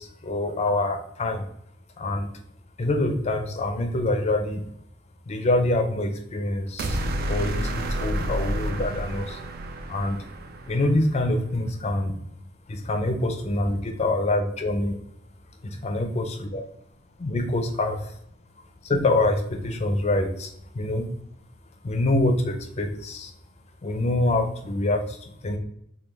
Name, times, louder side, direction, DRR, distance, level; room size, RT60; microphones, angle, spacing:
voice 1, 0.0-1.4 2.0-2.3 2.8-4.6 5.3-7.0 7.3-9.4 9.9-10.2 10.7-12.1 12.7-15.0 15.6-16.6 17.2-18.0 18.8-20.5 20.7-21.0 21.8-23.3 23.8-25.6, left 2 dB, 30° left, 5 dB, 0.4 m, -25 dB
sound 1, 6.8-11.1, right 1 dB, 50° right, 0.3 m, -30 dB
3.4 x 2.3 x 3.1 m, 0.70 s
head